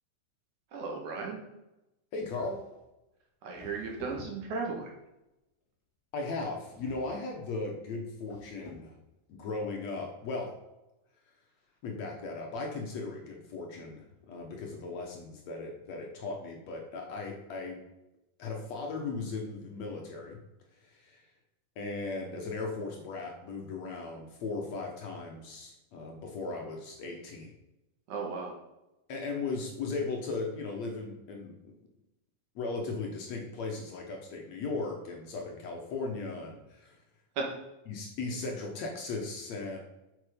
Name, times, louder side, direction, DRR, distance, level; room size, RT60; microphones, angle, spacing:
voice 1, 0.7-1.4 3.4-4.9 28.1-28.5 37.4-37.5, right 4 dB, 60° right, 1 dB, 2.9 m, -35 dB
voice 2, 2.1-2.6 6.1-9.0 9.3-10.5 11.8-17.8 18.4-20.4 20.8-21.2 21.8-27.5 29.1-31.5 32.6-37.0 37.9-39.8, left 3 dB, 60° left, 1 dB, 2.3 m, -37 dB
sound 1, 2.2-2.8 3.5-4.9 6.7-7.4 8.2-9.0, left 3 dB, 30° left, 2.5 m, -52 dB
8.6 x 7.4 x 5.2 m, 0.94 s
omnidirectional pair, 4.0 m